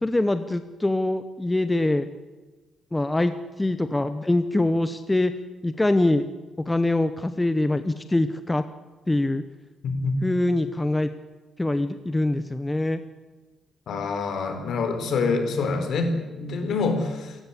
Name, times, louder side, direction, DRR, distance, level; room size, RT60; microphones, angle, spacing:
voice 1, 0.0-2.1 2.9-5.3 5.6-6.2 6.7-8.6 9.1-9.4 10.2-11.1 11.6-13.0, left 2 dB, 10° left, 11 dB, 0.8 m, -24 dB
voice 2, 13.9-17.4, left 4 dB, 60° left, 6 dB, 4.4 m, -26 dB
28.5 x 15.5 x 8.4 m, 1.2 s
cardioid pair, 160°, 0 cm